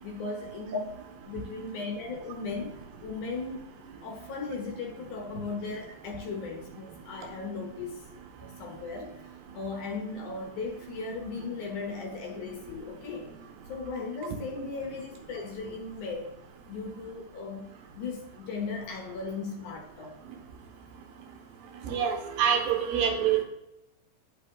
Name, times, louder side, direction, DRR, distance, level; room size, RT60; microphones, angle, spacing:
voice 1, 0.0-3.7 4.0-8.0 8.4-13.3 13.7-16.4 16.7-17.7 17.9-20.2 23.2-23.4, left 4 dB, 70° left, 2 dB, 2.1 m, -37 dB
voice 2, 21.9-23.4, right 8 dB, 75° right, 3 dB, 2.7 m, -26 dB
10.0 x 5.2 x 3.6 m, 0.90 s
omnidirectional pair, 4.4 m